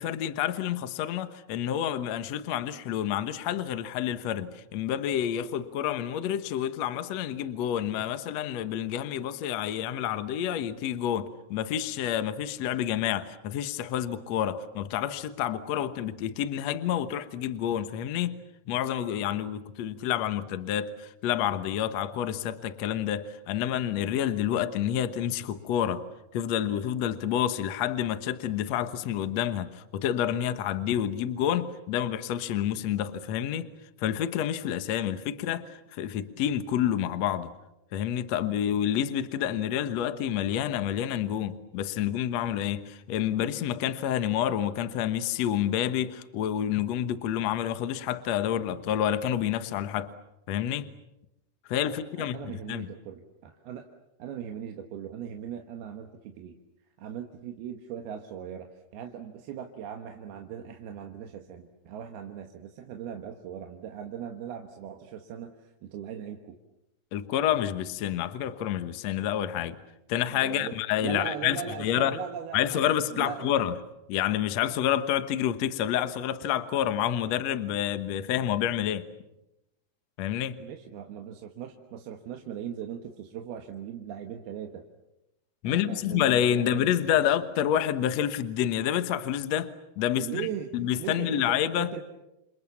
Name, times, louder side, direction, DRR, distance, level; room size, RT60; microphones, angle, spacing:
voice 1, 0.0-18.4 18.7-26.0 26.3-33.7 34.0-37.5 37.9-50.1 50.5-50.9 51.7-52.4 52.7-52.9 67.1-69.8 70.1-72.2 72.5-73.7 74.1-79.1 80.2-80.5 85.6-90.4 90.7-91.9, left 10 dB, 65° left, 1.7 m, -28 dB
voice 2, 51.8-53.9 54.2-56.6 57.0-66.6 70.3-70.8 71.0-72.8 73.1-73.7 80.6-84.8 85.7-86.9 90.2-90.7 91.0-92.0, right 9 dB, 70° right, 3.2 m, -39 dB
28.5 x 28.0 x 7.2 m
omnidirectional pair, 4.7 m